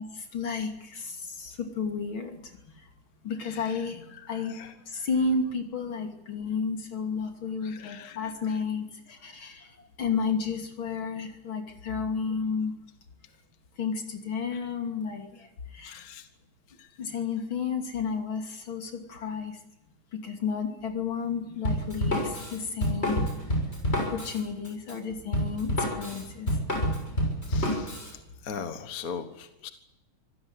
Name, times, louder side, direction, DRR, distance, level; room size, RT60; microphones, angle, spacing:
voice 1, 0.0-2.4 3.2-4.6 4.9-9.7 10.0-12.8 13.8-15.5 15.7-16.0 17.0-19.6 20.1-23.2 24.0-26.5, left 5 dB, 65° left, 4 dB, 3.6 m, -32 dB
voice 2, 7.6-8.2 15.8-16.3 16.8-16.9 27.5-28.2 28.4-29.7, left 6 dB, 45° left, 9 dB, 1.6 m, -40 dB
Drum kit, 21.6-28.1, equal, 25° left, 7.0 m, -28 dB
25.5 x 16.5 x 9.9 m, 0.90 s
omnidirectional pair, 2.4 m